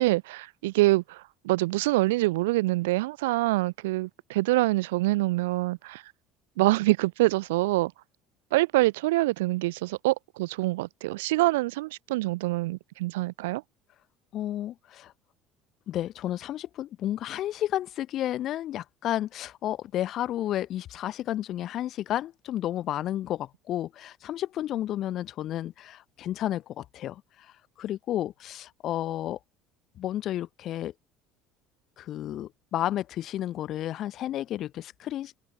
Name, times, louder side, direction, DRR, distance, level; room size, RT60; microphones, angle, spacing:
voice 1, 0.0-6.0 6.6-7.9 8.5-13.6, right 20 dB, 65° right, 0.5 m, -25 dB
voice 2, 14.3-15.1 15.9-29.4 30.0-30.9 32.0-35.3, left 12 dB, 45° left, 1.2 m, -32 dB
open air
figure-of-eight pair, 60°, 0 cm